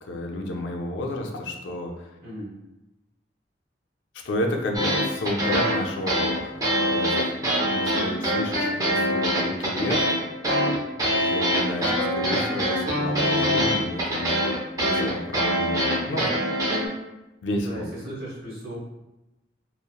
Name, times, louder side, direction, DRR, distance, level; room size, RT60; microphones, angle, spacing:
voice 1, 0.0-2.1 4.2-10.1 11.1-14.5 14.7-16.3 17.4-17.9, left 1 dB, 75° left, 2 dB, 0.4 m, -31 dB
voice 2, 2.2-2.6 17.5-18.8, right 1 dB, 55° right, -6 dB, 0.9 m, -36 dB
sound 1, 4.7-16.9, equal, 20° right, 0.5 m, -24 dB
2.8 x 2.0 x 2.2 m, 0.98 s
head